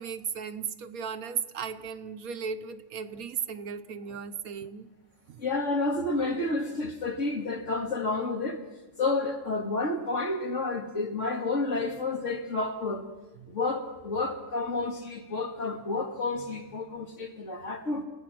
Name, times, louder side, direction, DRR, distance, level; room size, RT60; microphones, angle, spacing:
voice 1, 0.0-4.9 5.3-5.4, right 7 dB, 70° right, 1.3 m, -36 dB
voice 2, 5.4-8.6 9.0-13.0 13.5-18.0, left 3 dB, 50° left, 2.3 m, -30 dB
29.5 x 16.5 x 6.0 m
omnidirectional pair, 1.6 m